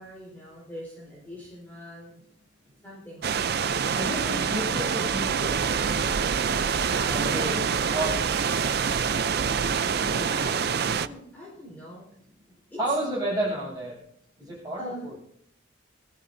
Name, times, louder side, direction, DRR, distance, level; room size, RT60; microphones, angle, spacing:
voice 1, 0.0-2.2 2.8-3.8 6.8-8.1 10.3-12.0 12.7-12.9 14.8-15.1, equal, 10° left, -6 dB, 4.5 m, -42 dB
sound 1, 3.2-11.1, right 6 dB, 50° right, 0.5 m, -26 dB
voice 2, 3.9-5.9 7.1-7.6 7.9-8.2 10.0-10.3 12.8-14.0 14.4-15.1, right 1 dB, 20° right, -3 dB, 7.2 m, -31 dB
20.0 x 13.5 x 2.7 m, 0.70 s
head